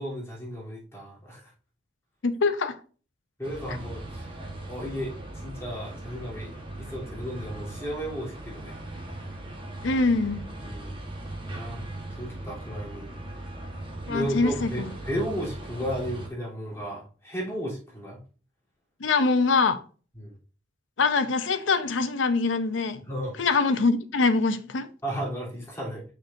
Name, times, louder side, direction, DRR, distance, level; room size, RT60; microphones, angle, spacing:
voice 1, 0.0-1.5 3.4-4.4 4.7-8.8 10.6-11.0 11.5-11.9 12.2-13.1 14.1-18.2 20.1-20.3 23.0-23.4 25.0-26.0, equal, 15° left, 3.3 m, -34 dB
voice 2, 2.2-2.8 9.8-10.4 14.1-14.7 19.0-19.8 21.0-23.0 23.4-24.9, left 4 dB, 90° left, 0.7 m, -23 dB
sound 1, 3.4-16.3, right 1 dB, 25° right, 1.3 m, -39 dB
6.6 x 6.4 x 2.7 m
head